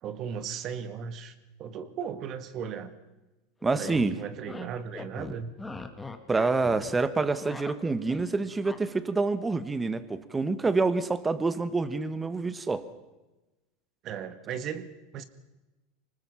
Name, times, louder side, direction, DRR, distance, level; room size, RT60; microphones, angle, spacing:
voice 1, 0.0-2.9 3.7-5.5 14.0-15.2, right 7 dB, 45° right, 12 dB, 1.7 m, -37 dB
sound 1, 3.6-4.1 4.5-4.7 4.9-6.9 7.2-8.3 8.6-8.8, left 3 dB, 10° left, 1.9 m, -40 dB
voice 2, 3.6-4.2 6.3-12.9, right 3 dB, 15° right, 13 dB, 1.4 m, -27 dB
25.0 x 19.5 x 5.8 m, 1.1 s
hypercardioid pair, 105°, 0 cm